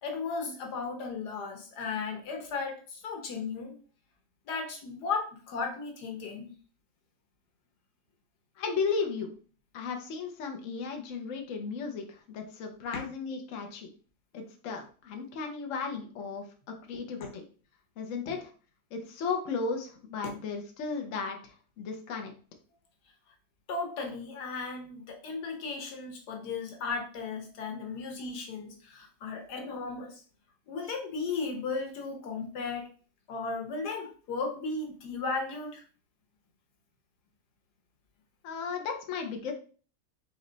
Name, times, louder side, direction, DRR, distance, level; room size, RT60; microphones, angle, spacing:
voice 1, 0.0-3.7 4.5-6.5 12.9-13.0 16.9-17.3 18.3-18.4 20.2-20.3 23.7-30.2 30.7-32.9 33.3-35.8, left 4 dB, 85° left, 3 dB, 1.6 m, -35 dB
voice 2, 8.6-9.3 9.7-13.9 14.3-17.4 18.0-18.5 18.9-22.3 38.4-39.5, left 5 dB, 60° left, 3 dB, 1.1 m, -35 dB
4.1 x 3.3 x 3.9 m, 0.40 s
omnidirectional pair, 1.7 m